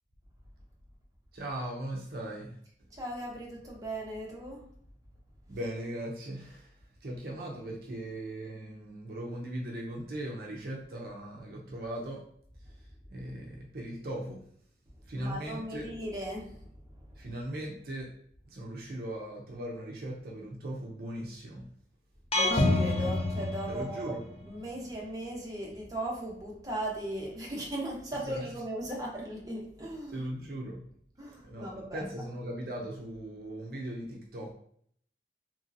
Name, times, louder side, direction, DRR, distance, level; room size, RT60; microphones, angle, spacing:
voice 1, 1.3-2.6 5.5-6.7 7.0-12.2 13.1-14.4 15.1-15.9 17.2-18.1 18.5-21.7 23.7-24.2 28.2-28.5 30.1-30.8 31.4-34.5, right 1 dB, 55° right, -1 dB, 0.5 m, -39 dB
voice 2, 2.9-4.7 15.1-16.7 16.9-17.3 22.3-24.1 24.4-30.2 31.2-32.0, right 1 dB, 20° right, -3 dB, 0.7 m, -38 dB
sound 1, 22.3-24.3, left 2 dB, 35° left, 0.4 m, -27 dB
2.9 x 2.6 x 2.6 m, 0.63 s
head